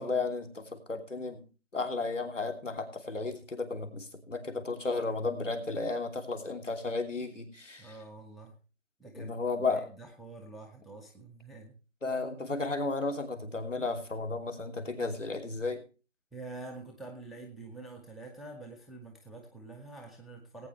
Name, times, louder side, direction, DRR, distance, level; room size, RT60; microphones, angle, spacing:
voice 1, 0.0-1.4 1.7-8.0 9.1-9.9 12.0-15.8, left 3 dB, 65° left, 4 dB, 3.0 m, -33 dB
voice 2, 7.8-8.6 9.0-9.3 9.6-11.8 16.3-20.7, right 2 dB, ahead, 0 dB, 0.6 m, -46 dB
19.0 x 8.9 x 3.2 m, 0.34 s
figure-of-eight pair, 175°, 39 cm